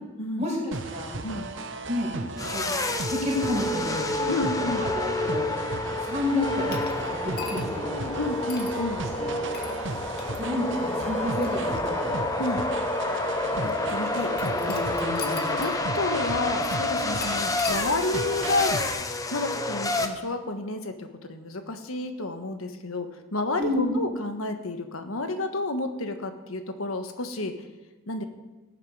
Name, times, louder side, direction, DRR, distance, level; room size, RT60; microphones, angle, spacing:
voice 1, 0.4-1.2 1.9-2.1 2.5-2.7 3.1-5.5 6.0-8.2 9.2-9.3 10.4-12.2 13.5-13.6 14.2-15.6 16.1-16.2 17.3-17.6 23.6-23.9, left 1 dB, 35° right, -3 dB, 5.3 m, -31 dB
sound 1, 0.7-19.0, right 3 dB, 60° right, 0.9 m, -36 dB
sound 2, 2.4-20.1, left 2 dB, 15° left, 0.8 m, -29 dB
voice 2, 4.3-4.9 8.1-9.0 9.8-10.1 12.4-12.6 13.6-14.7 15.6-18.8 19.3-27.5 28.1-28.3, left 2 dB, 85° left, 7 dB, 1.4 m, -31 dB
sound 3, 6.7-7.9 8.5-8.8 9.5-9.8 10.2-10.4 11.1-12.2 13.0-13.1 14.4-15.8 16.1-16.2 17.2-17.8, left 5 dB, 50° left, 1.8 m, -39 dB
18.0 x 10.5 x 4.9 m, 1.2 s
head